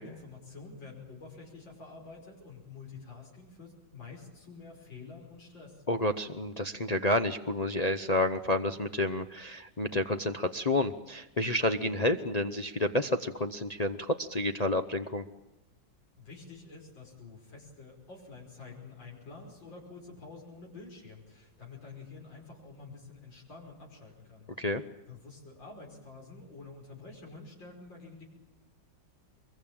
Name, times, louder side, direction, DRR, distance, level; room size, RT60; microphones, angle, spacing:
voice 1, 0.0-5.8 16.2-24.5 25.1-28.2, left 4 dB, 80° left, -2 dB, 6.3 m, -48 dB
voice 2, 5.9-15.2 24.6-24.8, left 1 dB, 40° left, 5 dB, 0.5 m, -30 dB
23.5 x 22.0 x 8.9 m, 1.0 s
omnidirectional pair, 2.0 m